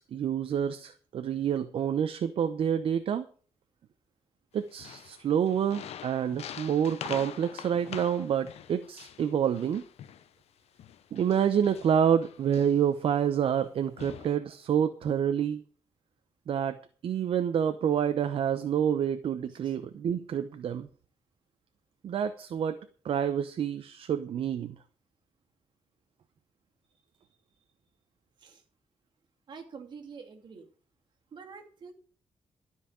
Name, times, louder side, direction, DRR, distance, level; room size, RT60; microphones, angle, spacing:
voice 1, 0.0-3.3 4.5-9.8 11.1-15.6 16.5-20.9 22.0-22.8 23.0-24.8, right 8 dB, 60° right, 10 dB, 0.8 m, -28 dB
sound 1, 4.7-10.3 10.8-12.9 13.6-13.7 14.0-14.4, left 10 dB, 90° left, 0.8 m, -45 dB
voice 2, 29.5-30.7 31.3-31.9, right 5 dB, 45° right, 3 dB, 2.4 m, -47 dB
12.5 x 5.7 x 8.6 m, 0.42 s
wide cardioid pair, 165°, 10 cm